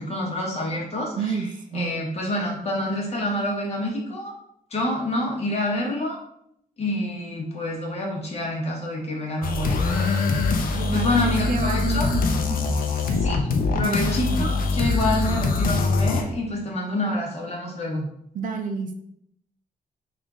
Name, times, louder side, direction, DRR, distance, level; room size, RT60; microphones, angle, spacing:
voice 1, 0.0-1.4 1.7-4.3 4.7-6.2 6.8-10.4 10.7-12.1 13.2-13.5 13.8-18.1, left 1 dB, 45° left, -2 dB, 1.2 m, -27 dB
voice 2, 1.2-2.0 10.7-12.2 12.7-12.8 13.0-13.2 13.7-14.5 18.3-19.0, right 5 dB, 65° right, 6 dB, 0.5 m, -30 dB
sound 1, 9.4-16.2, left 3 dB, 75° left, 0.5 m, -23 dB
3.6 x 2.5 x 3.6 m, 0.72 s
cardioid pair, 120°, 15 cm